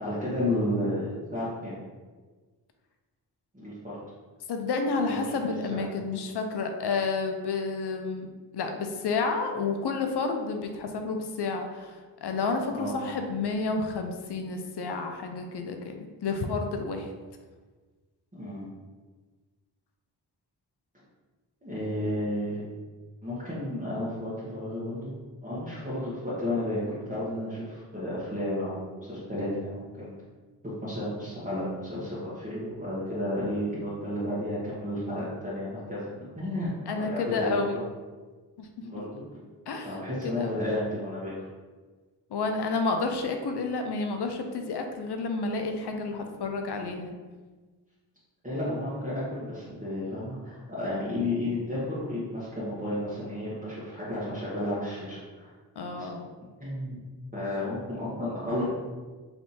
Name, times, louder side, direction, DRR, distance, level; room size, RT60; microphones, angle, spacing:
voice 1, 0.0-1.8 3.5-4.0 5.0-5.3 5.6-5.8 12.7-12.9 18.3-18.7 21.6-22.6 23.2-25.1 25.4-30.1 30.6-36.1 36.4-37.6 38.8-39.2 39.8-41.5 46.1-46.2 48.4-55.5 55.9-56.1 56.6-57.0 57.3-58.7, left 1 dB, 20° right, -10 dB, 1.4 m, -32 dB
voice 2, 4.5-17.1 36.9-37.8 38.6-38.7 39.7-40.6 42.3-47.2 55.8-56.3, left 4 dB, 65° left, 4 dB, 0.7 m, -30 dB
3.4 x 2.7 x 4.2 m, 1.4 s
cardioid pair, 50°, 42 cm